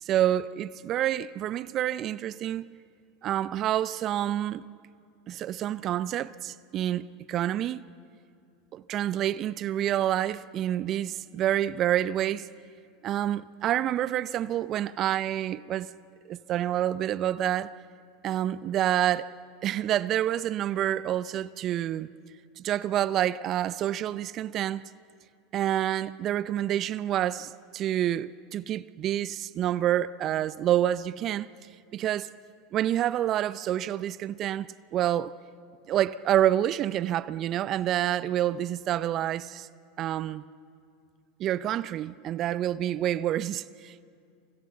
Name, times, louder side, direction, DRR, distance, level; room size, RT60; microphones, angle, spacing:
voice 1, 0.0-2.7 3.2-4.6 5.3-7.8 8.7-12.5 13.0-15.9 16.3-17.7 18.2-19.3 19.6-22.1 22.6-24.9 25.5-31.5 31.9-32.3 32.7-35.3 35.9-39.7 40.0-40.4 41.4-44.0, right 12 dB, 45° right, 0.6 m, -28 dB
28.5 x 24.5 x 6.9 m
hypercardioid pair, 85°, 0 cm